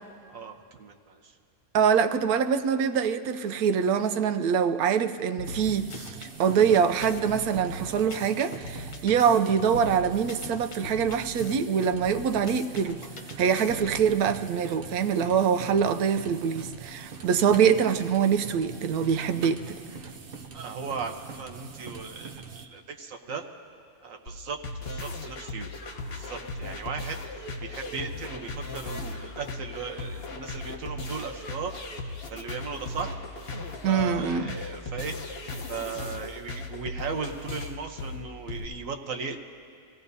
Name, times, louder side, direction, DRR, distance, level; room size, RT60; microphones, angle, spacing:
voice 1, 0.3-1.4 20.5-23.5 24.0-25.7 26.1-27.2 27.6-33.2 33.8-35.2 35.7-39.4, right 5 dB, 65° right, 3 dB, 1.3 m, -37 dB
voice 2, 1.7-13.1 13.4-19.8 33.8-34.6, right 7 dB, 85° right, 9 dB, 1.1 m, -24 dB
sound 1, 5.4-6.3 6.7-9.4 9.7-11.6 11.9-14.1, left 3 dB, 85° left, 1.6 m, -41 dB
sound 2, 5.4-22.7, right 5 dB, 50° right, 0.8 m, -43 dB
sound 3, 24.3-38.7, left 2 dB, 45° left, 1.2 m, -37 dB
25.0 x 16.5 x 2.7 m, 2.3 s
omnidirectional pair, 1.6 m